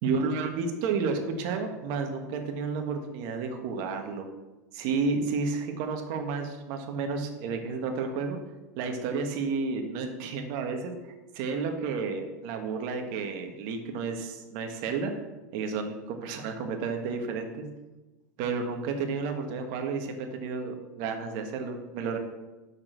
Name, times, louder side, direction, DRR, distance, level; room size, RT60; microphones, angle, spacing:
voice 1, 0.0-4.3 4.7-8.4 8.8-15.1 15.5-17.7 18.4-22.2, right 4 dB, 55° right, 5 dB, 1.5 m, -31 dB
6.3 x 5.9 x 6.2 m, 1.1 s
hypercardioid pair, 120°, 10 cm